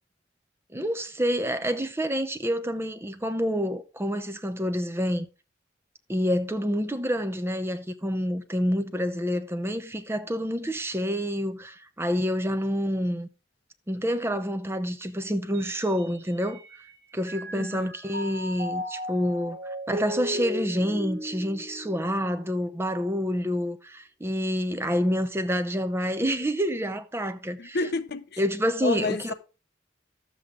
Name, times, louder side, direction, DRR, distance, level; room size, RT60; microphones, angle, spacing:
voice 1, 0.7-5.3 6.1-13.3 13.9-16.6 17.1-19.6 19.9-27.8 28.4-29.3, equal, 15° right, 0.8 m, -28 dB
Mallet percussion, 15.5-16.9 17.3-22.7, equal, 50° right, 2.2 m, -36 dB
voice 2, 17.5-17.9 27.6-28.4 28.8-29.3, left 2 dB, 60° left, 0.8 m, -30 dB
12.0 x 7.8 x 3.8 m
head